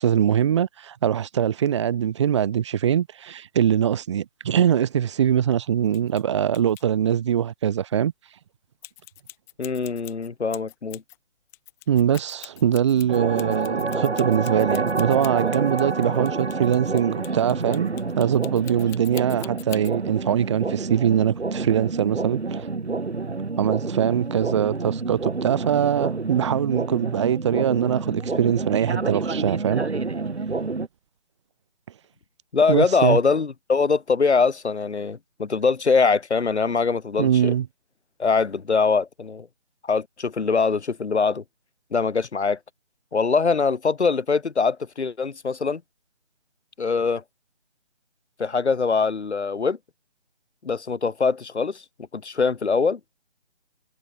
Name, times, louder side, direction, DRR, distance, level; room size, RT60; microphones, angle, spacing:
voice 1, 0.0-8.1 11.9-22.7 23.6-29.9 32.7-33.2 37.2-37.7, right 9 dB, 25° right, 2.5 m, -22 dB
sound 1, 5.9-6.2 6.5-6.8 8.8-11.2 11.5-19.9, left 19 dB, 5° left, 1.6 m, -43 dB
voice 2, 9.6-11.0 32.5-37.5 38.2-39.5 39.8-41.4 41.9-42.6 43.1-45.8 46.8-47.2 48.4-49.8 50.6-51.8 52.1-53.1, left 4 dB, 70° left, 1.3 m, -23 dB
sound 2, 13.1-30.9, right 3 dB, 70° right, 3.8 m, -28 dB
figure-of-eight pair, 160°, 34 cm